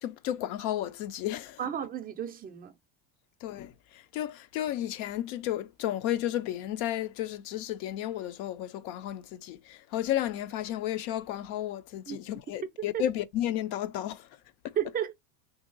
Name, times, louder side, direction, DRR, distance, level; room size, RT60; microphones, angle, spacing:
voice 1, 0.0-1.6 3.4-14.3 14.6-14.7, left 12 dB, 60° left, 0.5 m, -33 dB
voice 2, 1.6-2.7 12.1-12.2 12.9-13.0 14.8-15.1, right 9 dB, 20° right, 0.4 m, -32 dB
2.8 x 2.3 x 3.7 m
supercardioid pair, 130°, 48 cm